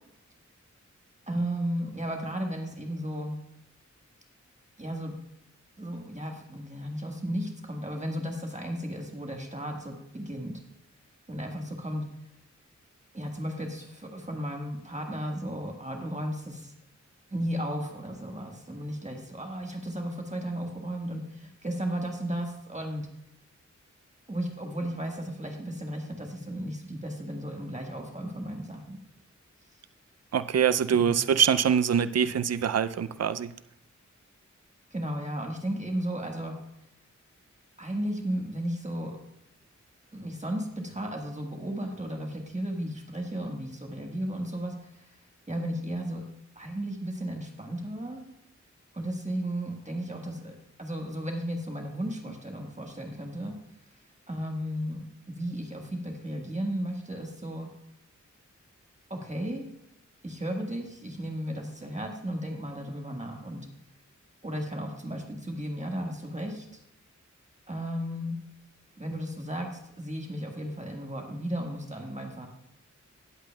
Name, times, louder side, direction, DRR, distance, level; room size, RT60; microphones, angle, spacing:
voice 1, 1.3-3.4 4.8-5.1 5.8-10.6 11.3-12.0 13.1-16.7 17.3-23.1 24.3-29.0 30.9-31.2 34.9-36.6 37.8-39.2 40.1-45.1 45.5-46.2 46.5-48.2 48.9-53.6 54.3-57.7 59.1-59.6 60.2-63.7 64.4-66.8 67.7-68.4 69.0-72.5, equal, 25° right, 1 dB, 1.5 m, -34 dB
voice 2, 30.3-33.5, right 8 dB, 60° right, 13 dB, 0.5 m, -24 dB
17.5 x 8.0 x 2.3 m, 0.80 s
wide cardioid pair, 70°, 30 cm